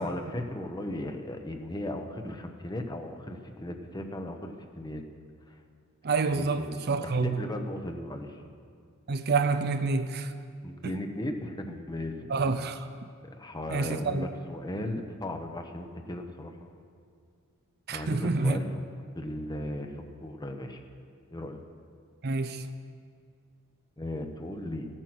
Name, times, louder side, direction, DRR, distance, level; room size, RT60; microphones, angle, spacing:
voice 1, 0.0-5.0 6.3-8.4 10.6-12.1 13.2-16.7 17.9-18.7 19.1-20.8 21.3-21.6 24.0-24.9, left 1 dB, 20° left, 5 dB, 0.9 m, -36 dB
voice 2, 6.0-7.4 9.1-10.3 10.8-10.9 12.3-12.9 13.7-14.3 17.9-18.6 22.2-22.7, right 4 dB, 50° right, 9 dB, 0.6 m, -28 dB
15.0 x 9.0 x 6.1 m, 2.2 s
head